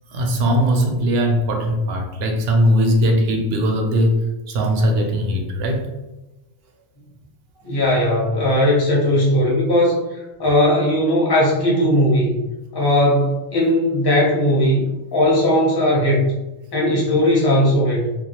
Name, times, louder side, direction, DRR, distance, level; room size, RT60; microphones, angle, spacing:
voice 1, 0.1-4.2 4.5-5.8, equal, 65° right, 2 dB, 0.7 m, -19 dB
voice 2, 7.6-16.4 16.7-18.2, left 1 dB, 25° left, -5 dB, 0.6 m, -18 dB
2.2 x 2.2 x 2.8 m, 1.0 s
omnidirectional pair, 1.2 m